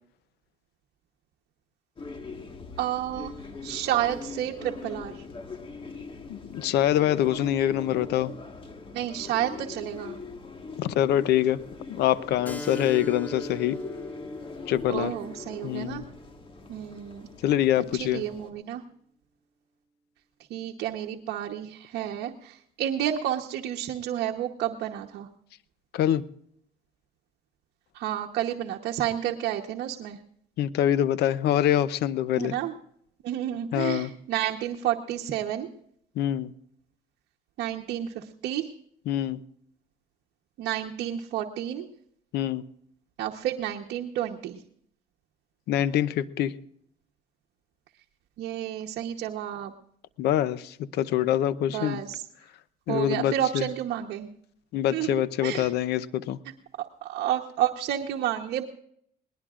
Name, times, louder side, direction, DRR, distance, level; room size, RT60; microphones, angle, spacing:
sound 1, 2.0-18.5, left 4 dB, 30° left, 1.6 m, -42 dB
voice 1, 2.8-3.3 3.6-5.2 8.9-10.2 14.9-16.0 16.7-17.3 18.0-18.8 20.5-25.3 27.9-30.2 32.4-32.7 33.2-35.7 37.6-38.7 40.6-41.9 43.2-44.6 48.4-49.7 51.7-52.2 52.9-54.3 54.9-55.7 57.0-58.6, right 11 dB, 75° right, 1 dB, 1.1 m, -30 dB
voice 2, 6.3-8.3 10.8-11.6 11.9-13.8 14.7-15.1 15.6-16.1 17.4-18.2 25.9-26.2 30.6-32.5 33.7-34.1 36.2-36.5 39.1-39.4 42.3-42.6 45.7-46.5 50.2-52.0 52.9-53.6 54.7-56.4, left 11 dB, 75° left, 16 dB, 0.7 m, -25 dB
Keyboard (musical), 12.4-17.6, right 1 dB, 10° left, 1.7 m, -41 dB
21.0 x 19.5 x 2.5 m, 0.69 s
cardioid pair, 110°, 17 cm